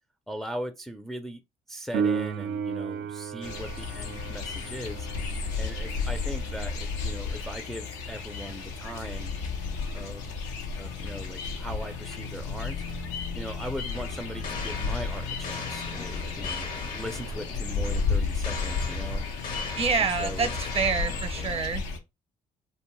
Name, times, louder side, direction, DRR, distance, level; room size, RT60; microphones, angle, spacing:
voice 1, 0.3-1.4 1.7-5.1 5.6-9.4 9.9-10.3 10.8-12.8 13.3-19.2 19.9-20.6, equal, ahead, 0.4 m, -39 dB
Piano, 1.9-12.3 19.9-20.0, right 6 dB, 75° right, 0.5 m, -37 dB
sound 1, 3.4-22.0, left 4 dB, 90° left, 0.5 m, -33 dB
sound 2, 13.9-21.8, left 3 dB, 65° left, 0.7 m, -38 dB
voice 2, 19.7-21.8, right 5 dB, 40° right, 0.6 m, -27 dB
2.5 x 2.2 x 3.0 m
supercardioid pair, 60°, 16 cm